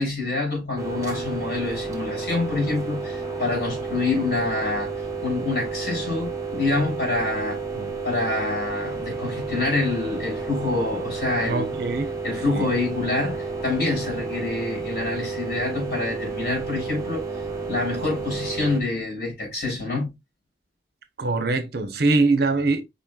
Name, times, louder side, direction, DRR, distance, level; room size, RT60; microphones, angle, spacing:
voice 1, 0.0-7.6 8.0-11.7 12.2-17.2 17.7-20.1, left 3 dB, 60° left, 3.6 m, -26 dB
sound 1, 0.8-18.8, right 4 dB, 20° right, 1.0 m, -31 dB
voice 2, 11.4-12.1 12.5-12.7 21.2-22.8, right 3 dB, 60° right, 0.8 m, -23 dB
5.2 x 4.3 x 2.4 m
head